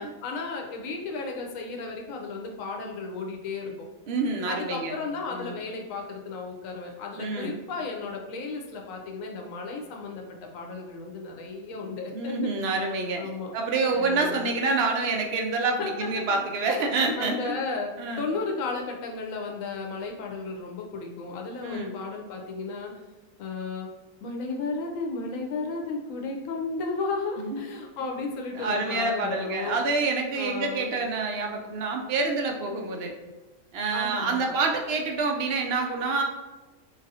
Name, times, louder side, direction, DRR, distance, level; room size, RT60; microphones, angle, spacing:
voice 1, 0.2-3.9 4.5-12.7 13.2-13.5 13.9-14.5 15.8-16.4 17.2-22.9 23.4-23.9 24.2-29.8 30.4-31.0 33.9-34.5, left 4 dB, 80° left, 1 dB, 1.0 m, -34 dB
voice 2, 4.1-5.0 5.3-5.6 7.2-7.6 12.1-13.2 13.5-17.5 18.0-18.2 21.6-21.9 27.4-27.7 28.6-33.1 33.7-36.2, right 3 dB, 65° right, 2 dB, 0.7 m, -27 dB
4.0 x 2.5 x 2.7 m, 1.1 s
omnidirectional pair, 1.4 m